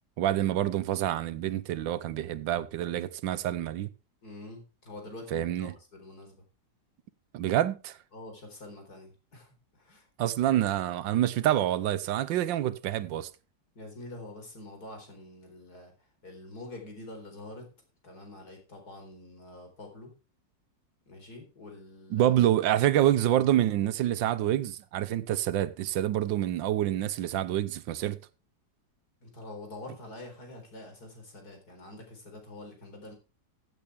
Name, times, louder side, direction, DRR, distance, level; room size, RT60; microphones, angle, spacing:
voice 1, 0.2-3.9 5.3-5.7 7.3-8.0 10.2-13.3 22.1-28.2, right 12 dB, 85° right, 1.5 m, -27 dB
voice 2, 4.2-6.4 8.1-10.1 10.5-10.6 13.7-15.9 16.2-17.7 18.0-20.1 21.1-22.3 29.2-33.1, left 2 dB, 55° left, 4.6 m, -46 dB
15.0 x 8.6 x 3.4 m
omnidirectional pair, 2.0 m